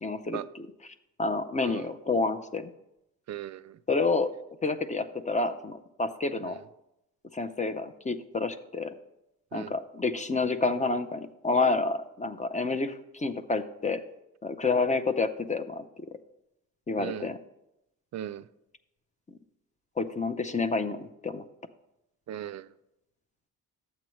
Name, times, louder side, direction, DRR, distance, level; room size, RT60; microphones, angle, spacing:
voice 1, 0.0-0.7 1.2-2.7 3.9-4.3 4.6-6.6 7.3-8.9 9.5-14.0 14.4-15.8 16.9-17.4 20.0-21.4, left 3 dB, 20° left, 10 dB, 0.5 m, -29 dB
voice 2, 3.3-3.7 6.4-6.5 9.5-9.7 17.0-17.3 18.1-18.4 22.3-22.7, right 11 dB, 50° right, 15 dB, 0.4 m, -37 dB
12.0 x 7.8 x 3.1 m, 0.87 s
cardioid pair, 105°, 37 cm